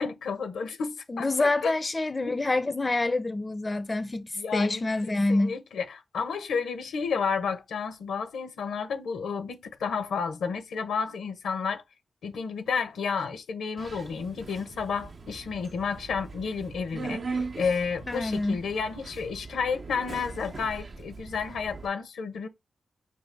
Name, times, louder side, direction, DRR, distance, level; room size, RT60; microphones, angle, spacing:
voice 1, 0.0-1.7 2.2-2.4 4.4-4.8 5.1-11.8 12.2-22.5, left 5 dB, 85° left, 0.7 m, -31 dB
voice 2, 1.1-5.6 18.1-18.6, left 2 dB, 30° left, 0.5 m, -27 dB
Subway metro underground, 13.8-21.9, right 4 dB, 60° right, 0.6 m, -40 dB
5.2 x 2.4 x 3.3 m
cardioid pair, 50°, 0 cm